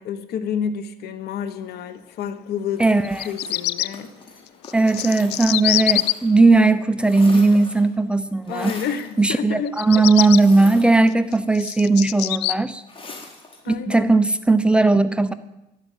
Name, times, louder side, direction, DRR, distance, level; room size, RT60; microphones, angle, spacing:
voice 1, 0.0-2.9 3.2-4.1 8.5-10.0 13.6-14.3, left 7 dB, 70° left, 12 dB, 1.4 m, -29 dB
sound 1, 2.7-6.5 6.8-7.9 8.5-9.1 10.3-11.5 12.9-13.7, left 3 dB, 30° left, 4.1 m, -41 dB
voice 2, 2.8-3.2 4.7-8.8 9.2-12.8 13.7-15.3, right 3 dB, 5° right, 11 dB, 0.9 m, -17 dB
Bird vocalization bird call bird song, 3.0-3.9 4.6-6.1 9.7-10.4 11.1-12.5, left 17 dB, 90° left, 0.5 m, -23 dB
12.5 x 12.0 x 9.5 m, 0.92 s
cardioid pair, 110°, 17 cm